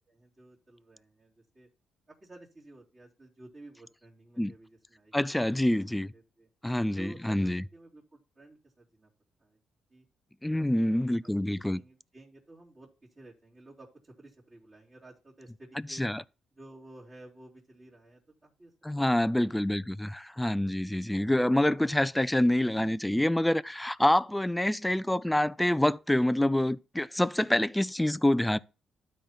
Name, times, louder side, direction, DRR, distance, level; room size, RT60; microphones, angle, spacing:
voice 1, 0.1-1.7 2.1-5.4 6.1-6.5 7.0-9.1 9.4-9.6 9.9-10.0 10.4-12.9 13.1-16.1 16.6-19.2, right 2 dB, 30° right, 3.2 m, -53 dB
voice 2, 5.1-6.1 6.6-7.6 10.4-11.8 15.9-16.2 18.8-28.6, left 1 dB, 5° left, 0.4 m, -26 dB
12.5 x 4.5 x 4.1 m
cardioid pair, 90°, 0 cm